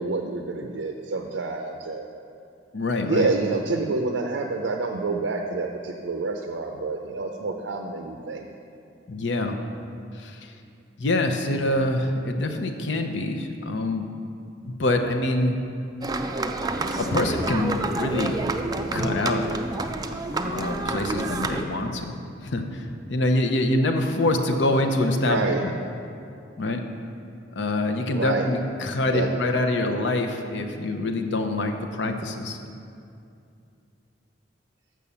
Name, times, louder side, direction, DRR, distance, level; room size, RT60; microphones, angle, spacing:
voice 1, 0.0-2.1 3.0-8.5 25.2-25.6 28.1-28.4 29.1-29.3, right 3 dB, 90° right, 4 dB, 0.5 m, -28 dB
voice 2, 2.7-3.3 9.1-9.6 10.2-10.4 11.0-14.1 14.6-15.6 17.0-18.4 18.9-19.4 20.5-22.1 22.4-22.8 23.1-25.7 26.6-26.8 27.6-32.6, left 2 dB, 70° left, 5 dB, 0.7 m, -25 dB
sound 1, 16.0-21.6, right 2 dB, 20° right, 0.4 m, -28 dB
6.8 x 6.2 x 7.0 m, 2.5 s
head